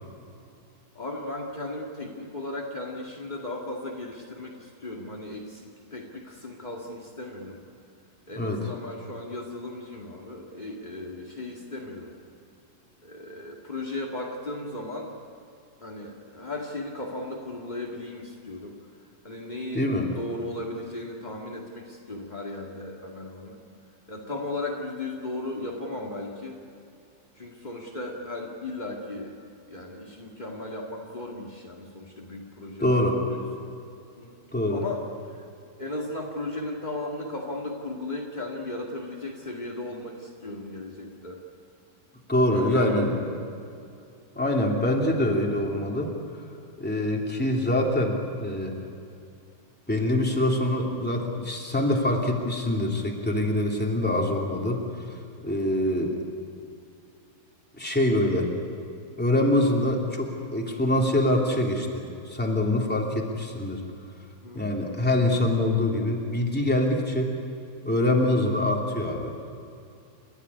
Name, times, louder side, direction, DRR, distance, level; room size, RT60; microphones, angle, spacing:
voice 1, 0.9-7.6 8.3-12.2 13.0-15.1 15.8-18.8 19.2-23.6 24.1-26.6 27.3-29.4 29.7-33.7 34.2-34.4 34.7-35.5 35.8-41.4 42.5-43.5 55.7-56.0 64.4-64.8, left 2 dB, 45° left, 0 dB, 0.5 m, -36 dB
voice 2, 19.7-20.1 32.8-33.2 34.5-34.8 42.3-43.1 44.3-46.1 46.8-48.8 49.9-54.8 55.1-55.2 55.4-56.2 57.8-58.5 59.2-63.8 64.5-67.3 67.8-69.3, left 1 dB, 5° left, -1 dB, 2.0 m, -24 dB
29.5 x 13.5 x 9.8 m, 2.6 s
omnidirectional pair, 4.6 m